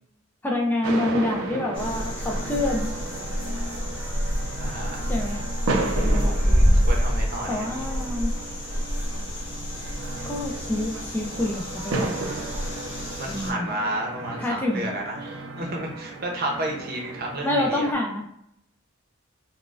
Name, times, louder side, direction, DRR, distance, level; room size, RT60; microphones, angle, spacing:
voice 1, 0.4-2.9 5.1-5.5 6.0-6.8 7.5-8.3 10.3-12.2 13.3-13.7 14.4-14.8 17.4-18.3, left 1 dB, 10° left, -1 dB, 0.3 m, -27 dB
sound 1, 0.8-17.9, right 2 dB, 85° right, 0.5 m, -34 dB
sound 2, 1.7-13.5, equal, 25° left, 1.0 m, -27 dB
voice 2, 4.6-5.0 6.1-7.8 13.0-17.9, right 1 dB, 50° right, 0 dB, 0.7 m, -32 dB
4.0 x 2.2 x 2.4 m, 0.72 s
head